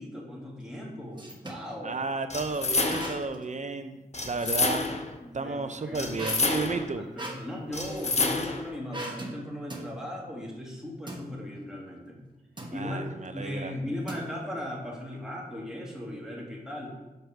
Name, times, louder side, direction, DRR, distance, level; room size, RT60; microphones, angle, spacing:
voice 1, 0.0-1.9 5.2-12.2 12.6-16.9, left 1 dB, 5° right, -3 dB, 1.9 m, -38 dB
sound 1, 0.6-1.7 2.9-3.5 3.9-5.1 6.1-8.2 8.9-9.4 9.7-9.9 11.1-11.3 12.6-12.8 14.1-14.6, right 1 dB, 30° right, 1.1 m, -40 dB
voice 2, 1.8-4.0 4.2-4.9 5.3-7.0 12.7-13.7, right 3 dB, 45° right, 9 dB, 0.6 m, -33 dB
sound 2, 2.3-3.3 4.1-5.1 5.9-6.9 7.7-8.7, left 3 dB, 45° left, 0.8 m, -29 dB
6.7 x 4.4 x 5.8 m, 1.1 s
wide cardioid pair, 75°, 16 cm